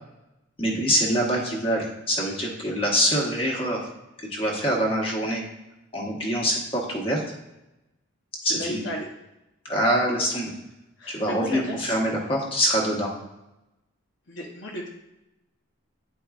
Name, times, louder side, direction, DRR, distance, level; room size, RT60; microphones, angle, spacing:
voice 1, 0.6-3.8 4.3-5.4 5.9-7.2 8.4-8.8 9.7-10.5 11.1-13.1, equal, 25° left, -2 dB, 1.2 m, -24 dB
voice 2, 8.4-9.1 11.0-12.0 14.3-14.9, left 1 dB, 60° left, -1 dB, 0.9 m, -34 dB
9.2 x 4.6 x 2.4 m, 0.93 s
head